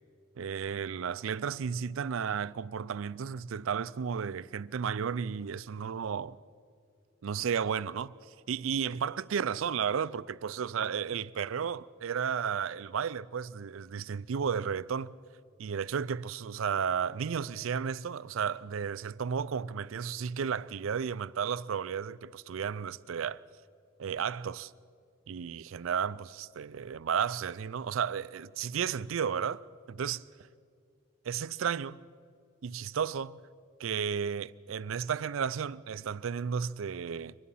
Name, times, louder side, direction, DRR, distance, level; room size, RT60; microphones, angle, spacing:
voice 1, 0.4-6.4 7.2-8.1 8.5-15.1 15.6-23.4 24.0-24.7 25.3-29.6 29.9-30.2 31.2-32.0 32.6-33.4 33.8-37.4, right 7 dB, 75° right, 0.4 m, -33 dB
23.5 x 19.5 x 5.6 m
head